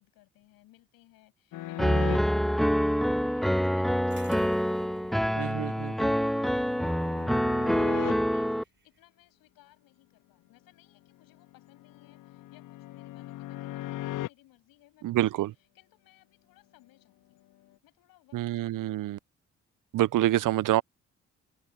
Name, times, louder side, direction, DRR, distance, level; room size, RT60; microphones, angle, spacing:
voice 1, 0.0-17.4 17.8-19.0, left 17 dB, 85° left, 7.7 m, -62 dB
sound 1, 1.5-2.2 5.6-8.1 11.2-14.3, left 15 dB, 65° left, 0.6 m, -39 dB
Piano, 1.8-8.6, equal, ahead, 0.5 m, -26 dB
sound 2, 4.1-9.0, right 4 dB, 35° right, 7.0 m, -56 dB
voice 2, 5.4-5.7 15.0-15.5 18.3-19.2 19.9-20.8, right 15 dB, 65° right, 0.6 m, -26 dB
hypercardioid pair, 45°, 34 cm